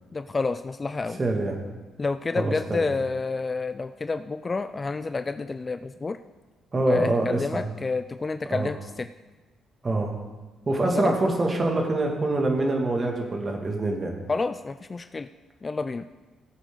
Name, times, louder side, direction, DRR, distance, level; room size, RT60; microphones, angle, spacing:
voice 1, 0.1-1.2 2.0-6.2 6.8-9.1 10.8-11.1 14.3-15.3 15.6-16.1, left 3 dB, 30° left, 11 dB, 0.4 m, -29 dB
voice 2, 1.2-1.5 2.4-2.9 6.7-7.7 8.5-8.7 9.8-10.2 10.7-14.1, right 2 dB, 30° right, 1 dB, 2.3 m, -25 dB
18.0 x 8.1 x 4.0 m, 1.2 s
cardioid pair, 90°, 0 cm